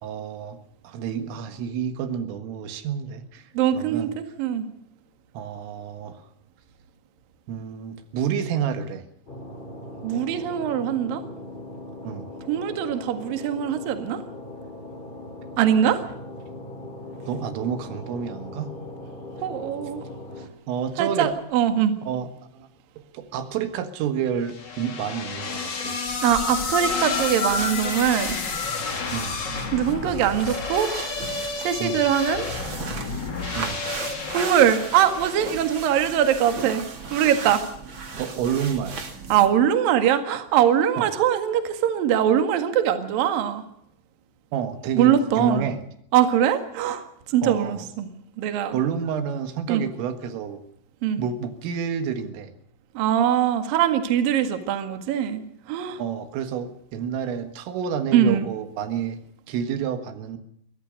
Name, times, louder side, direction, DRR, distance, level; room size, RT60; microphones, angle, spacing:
voice 1, 0.0-0.6 0.8-3.5 3.7-4.1 5.4-6.2 7.5-9.1 12.0-12.3 17.3-18.7 20.4-21.3 22.0-22.7 23.1-26.0 29.1-29.4 31.8-32.1 33.5-33.8 38.1-39.0 41.0-41.1 44.5-45.8 47.4-47.9 48.7-50.6 51.2-52.5 56.0-59.2 59.5-60.4, right 8 dB, 85° right, 9 dB, 4.3 m, -29 dB
voice 2, 3.5-4.7 10.0-11.2 12.5-14.2 15.6-16.1 19.4-20.0 21.0-21.9 26.2-28.4 29.7-30.9 31.6-32.5 34.3-36.8 37.1-37.6 39.3-43.6 45.0-45.7 46.1-48.8 49.7-49.8 51.0-51.2 52.9-55.4 55.7-56.0 58.1-58.5, right 9 dB, 55° right, 8 dB, 3.0 m, -22 dB
sound 1, 9.3-20.5, left 2 dB, 15° left, 2.3 m, -39 dB
sound 2, 24.5-35.8, left 4 dB, 50° left, 1.3 m, -30 dB
sound 3, 26.0-39.6, right 4 dB, 40° right, 1.9 m, -37 dB
23.0 x 18.0 x 6.6 m, 0.71 s
omnidirectional pair, 5.6 m